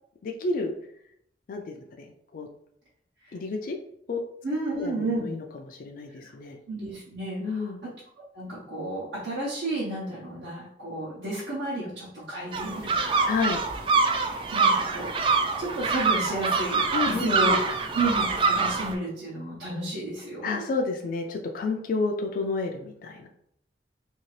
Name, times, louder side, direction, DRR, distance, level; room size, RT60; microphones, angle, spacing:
voice 1, 0.2-0.7 1.5-2.1 2.3-2.5 3.3-3.8 4.1-4.2 4.8-4.9 5.2-6.6 7.4-7.8 13.3-13.6 16.9-17.6 20.4-23.3, left 3 dB, 50° left, 3 dB, 0.3 m, -30 dB
voice 2, 4.4-5.3 6.2-6.3 6.7-7.7 8.3-13.3 14.2-17.6 17.9-20.6, right 2 dB, 80° right, -8 dB, 0.9 m, -32 dB
sound 1, 12.5-18.9, right 4 dB, 30° right, 0.3 m, -25 dB
2.8 x 2.7 x 3.1 m, 0.73 s
head